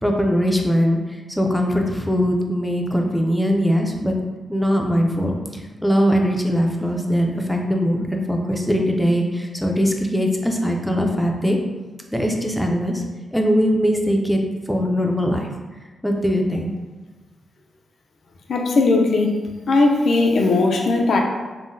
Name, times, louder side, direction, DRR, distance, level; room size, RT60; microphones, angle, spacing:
voice 1, 0.0-4.2 4.5-11.6 12.1-13.0 13.3-14.4 14.7-15.5 16.0-16.7, equal, ahead, 1 dB, 0.4 m, -21 dB
voice 2, 18.5-19.3 19.7-21.2, left 3 dB, 65° left, 1 dB, 0.4 m, -18 dB
3.7 x 2.0 x 2.5 m, 1.3 s
cardioid pair, 110°, 0 cm